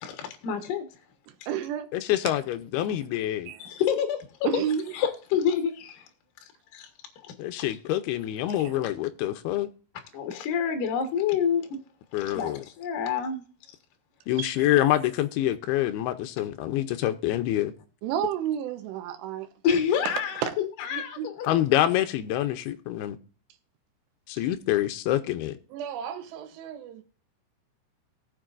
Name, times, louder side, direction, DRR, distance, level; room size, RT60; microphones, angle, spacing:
voice 1, 0.0-0.9 3.6-4.3 4.9-6.0 6.7-6.9 7.2-7.7 10.1-11.8 12.3-13.4 19.6-21.5, left 7 dB, 60° left, 2.6 m, -28 dB
voice 2, 1.3-1.9 2.9-3.0 3.5-3.6 4.4-5.0 8.6-8.7 14.4-14.7 18.0-19.5 20.0-20.5 20.9-21.3 25.7-27.0, right 9 dB, 80° right, 3.1 m, -32 dB
voice 3, 1.9-3.5 7.4-9.7 12.1-12.7 14.3-17.7 21.5-23.2 24.3-25.6, left 13 dB, 80° left, 2.5 m, -26 dB
19.0 x 6.9 x 2.5 m
omnidirectional pair, 5.0 m